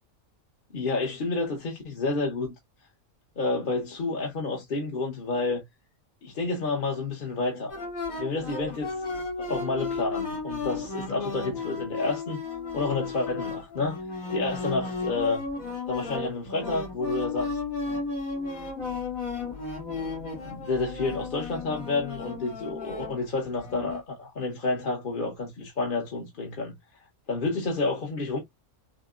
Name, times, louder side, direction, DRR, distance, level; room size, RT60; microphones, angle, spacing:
voice 1, 0.7-2.5 3.4-5.6 6.2-7.7 8.2-9.1 9.4-12.4 12.7-14.0 14.3-15.4 15.9-17.6 20.4-26.7 27.3-28.4, left 3 dB, 40° left, 1.0 m, -29 dB
sound 1, 7.7-24.0, left 3 dB, 80° left, 2.9 m, -34 dB
6.4 x 2.2 x 2.4 m
omnidirectional pair, 1.4 m